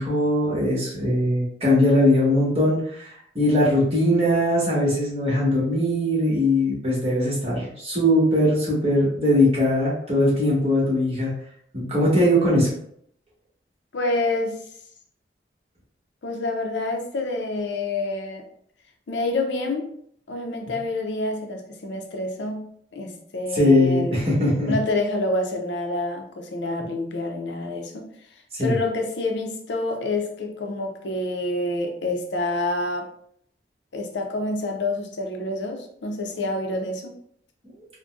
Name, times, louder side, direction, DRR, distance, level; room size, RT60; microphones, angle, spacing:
voice 1, 0.0-11.3 11.7-12.7 23.5-24.7 28.5-28.8, left 1 dB, 35° right, -6 dB, 1.2 m, -20 dB
voice 2, 13.9-14.6 16.2-18.4 19.1-19.9 20.3-24.2 24.7-28.1 28.6-33.1 33.9-37.1, left 2 dB, 85° left, 3 dB, 0.6 m, -27 dB
3.7 x 2.2 x 2.4 m, 0.66 s
head